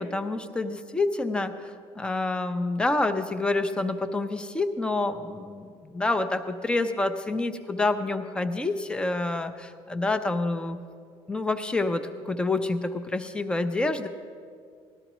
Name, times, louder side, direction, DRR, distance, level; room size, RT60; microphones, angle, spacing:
voice 1, 0.0-1.5 2.0-10.8 11.3-14.1, left 2 dB, 10° left, 9 dB, 0.5 m, -28 dB
18.5 x 13.0 x 3.0 m, 2.1 s
cardioid pair, 165°, 12 cm